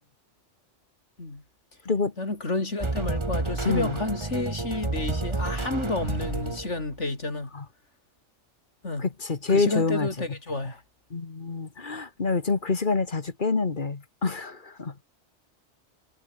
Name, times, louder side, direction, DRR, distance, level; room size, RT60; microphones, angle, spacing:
voice 1, 2.2-7.5 8.8-9.0 9.5-10.8, left 2 dB, 75° left, 4.5 m, -30 dB
sound 1, 2.8-7.0, right 2 dB, 25° right, 1.7 m, -30 dB
voice 2, 3.6-4.0 7.5-7.6 9.0-10.1 11.1-14.9, left 4 dB, 45° left, 1.7 m, -27 dB
omnidirectional pair, 1.2 m